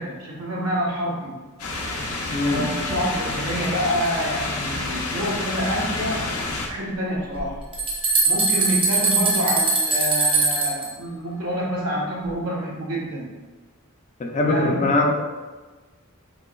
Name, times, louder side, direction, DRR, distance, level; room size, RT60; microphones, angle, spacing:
voice 1, 0.0-1.3 2.4-6.3 6.7-7.6 8.2-13.3 14.3-14.9, equal, 80° right, -4 dB, 1.0 m, -27 dB
sound 1, 1.6-6.7, left 2 dB, 85° left, 0.6 m, -29 dB
voice 2, 2.3-2.7 14.2-15.2, left 2 dB, 35° left, 1 dB, 0.5 m, -22 dB
sound 2, 7.3-10.9, right 3 dB, 25° right, 0.6 m, -21 dB
4.1 x 2.9 x 2.3 m, 1.3 s
head